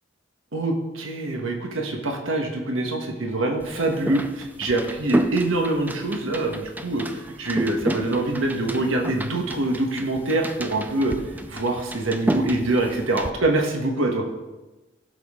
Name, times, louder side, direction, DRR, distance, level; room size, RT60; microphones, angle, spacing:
voice 1, 0.5-14.2, right 2 dB, 85° right, 2 dB, 1.4 m, -25 dB
sound 1, 3.6-13.3, right 1 dB, 10° right, 0.4 m, -30 dB
16.0 x 6.2 x 3.7 m, 1.1 s
head